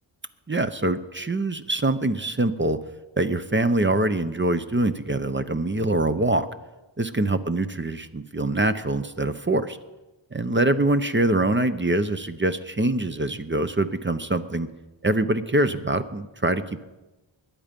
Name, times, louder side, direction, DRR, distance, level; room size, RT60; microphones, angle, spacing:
voice 1, 0.5-2.8 3.2-6.5 7.0-9.8 10.3-14.7 15.0-16.6, right 2 dB, 25° right, 10 dB, 0.7 m, -24 dB
21.0 x 8.6 x 5.3 m, 1.1 s
wide cardioid pair, 80°, 48 cm